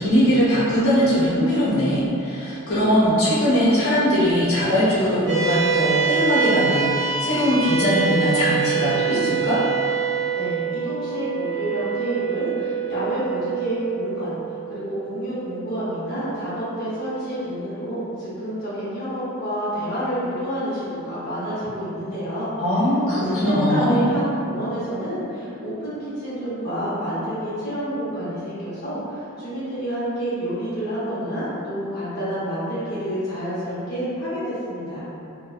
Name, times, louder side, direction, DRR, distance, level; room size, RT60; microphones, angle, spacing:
voice 1, 0.0-9.6 22.6-24.1, equal, 85° left, -11 dB, 0.9 m, -20 dB
sound 1, 5.3-17.9, right 6 dB, 5° left, 0.9 m, -26 dB
voice 2, 10.4-14.4 14.7-22.5 23.1-35.1, equal, 50° left, -12 dB, 0.8 m, -28 dB
2.7 x 2.2 x 2.3 m, 2.7 s
head